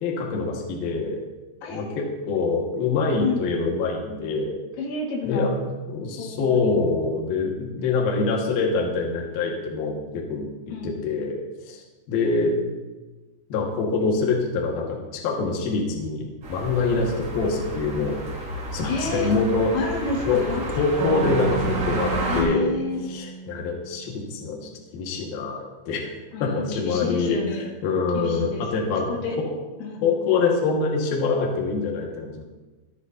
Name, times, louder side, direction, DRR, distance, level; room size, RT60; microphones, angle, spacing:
voice 1, 0.0-1.2 1.7-4.6 5.2-11.4 11.7-12.5 13.5-14.9 15.1-18.2 18.7-19.7 20.2-20.4 20.8-22.7 23.1-24.6 24.9-26.0 26.4-27.4 27.8-29.2 30.0-32.4, left 4 dB, 60° left, -1 dB, 3.0 m, -25 dB
voice 2, 1.6-2.0 3.2-3.5 4.8-5.5 6.2-6.8 10.7-10.9 16.9-17.1 18.9-19.3 19.7-20.6 22.2-23.0 26.3-27.7 28.2-29.4 29.8-30.0, left 3 dB, 80° left, -1 dB, 4.5 m, -30 dB
sound 1, 16.4-22.4, right 1 dB, 45° right, 4.8 m, -31 dB
sound 2, 21.0-24.5, right 6 dB, 80° right, 3.6 m, -32 dB
25.0 x 8.4 x 2.8 m, 1.2 s
omnidirectional pair, 5.8 m